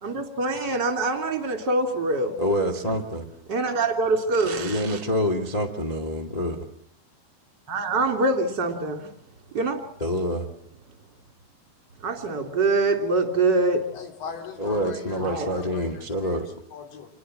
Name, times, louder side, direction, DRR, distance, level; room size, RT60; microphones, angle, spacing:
voice 1, 0.0-2.4 3.5-5.0 7.7-9.1 9.5-9.8 12.0-13.9 15.2-15.5, right 3 dB, 30° right, 2.9 m, -24 dB
voice 2, 2.4-3.2 4.5-6.6 10.0-10.5 14.6-16.5, equal, 25° left, 0.8 m, -26 dB
voice 3, 13.9-17.1, left 6 dB, 85° left, 5.6 m, -40 dB
27.5 x 21.5 x 7.7 m
omnidirectional pair, 5.0 m